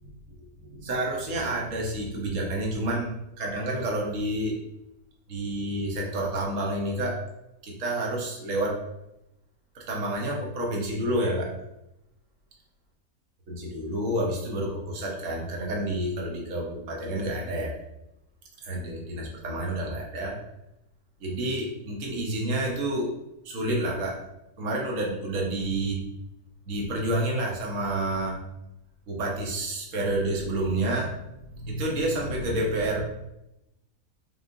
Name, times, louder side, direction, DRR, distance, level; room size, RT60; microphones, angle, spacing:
voice 1, 0.6-4.6 5.3-7.2 7.6-8.8 9.7-11.5 13.5-17.8 18.6-20.4 21.2-23.1 23.4-24.2 24.6-26.0 26.7-28.4 29.1-31.2 31.5-33.0, right 1 dB, 60° right, -2 dB, 1.2 m, -29 dB
3.9 x 3.7 x 2.5 m, 0.88 s
omnidirectional pair, 1.5 m